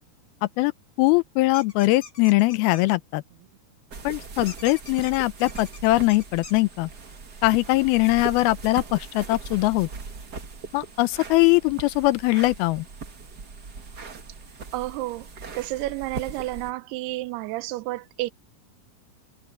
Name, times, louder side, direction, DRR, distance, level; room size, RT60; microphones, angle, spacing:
voice 1, 1.0-3.2 4.0-6.9 7.4-9.9 10.7-12.9, left 20 dB, 80° left, 2.4 m, -21 dB
sound 1, 1.5-3.0 4.5-6.6, left 5 dB, 40° left, 4.8 m, -44 dB
sound 2, 3.9-16.7, right 4 dB, 40° right, 1.6 m, -40 dB
voice 2, 14.7-15.3 15.6-18.3, right 18 dB, 85° right, 2.7 m, -30 dB
omnidirectional pair, 4.6 m